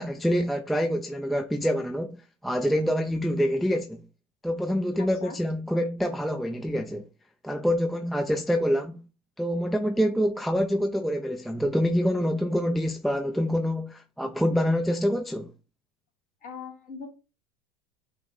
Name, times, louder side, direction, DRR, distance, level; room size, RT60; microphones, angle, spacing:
voice 1, 0.0-4.0 4.4-7.0 7.4-9.0 9.4-15.5, equal, ahead, 0.3 m, -26 dB
voice 2, 5.0-5.4 16.4-17.1, left 5 dB, 40° left, 2.0 m, -40 dB
6.2 x 2.1 x 3.7 m
hypercardioid pair, 105°, 20 cm